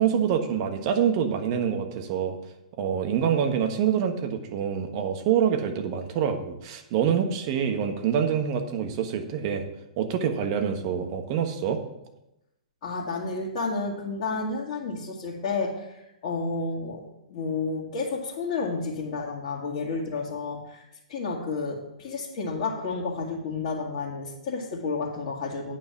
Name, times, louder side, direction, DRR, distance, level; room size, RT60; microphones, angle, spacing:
voice 1, 0.0-2.4 2.8-9.7 10.0-11.8, right 8 dB, 40° right, 6 dB, 1.3 m, -26 dB
voice 2, 12.8-17.0 17.3-20.8 21.1-25.8, left 4 dB, 45° left, -6 dB, 1.9 m, -31 dB
9.1 x 6.0 x 6.0 m, 0.88 s
hypercardioid pair, 120°, 4 cm